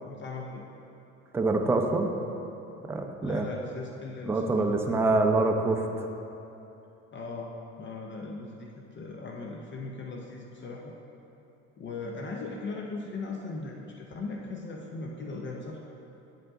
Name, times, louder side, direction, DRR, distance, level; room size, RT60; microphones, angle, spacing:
voice 1, 0.0-0.6 3.2-4.7 7.1-7.5 7.8-11.0 11.8-15.8, left 3 dB, 40° left, 0 dB, 0.6 m, -38 dB
voice 2, 1.3-2.1 2.9-3.5 4.3-5.9, right 3 dB, 10° right, 3 dB, 0.4 m, -25 dB
8.1 x 4.4 x 3.7 m, 2.9 s
cardioid pair, 110°, 30 cm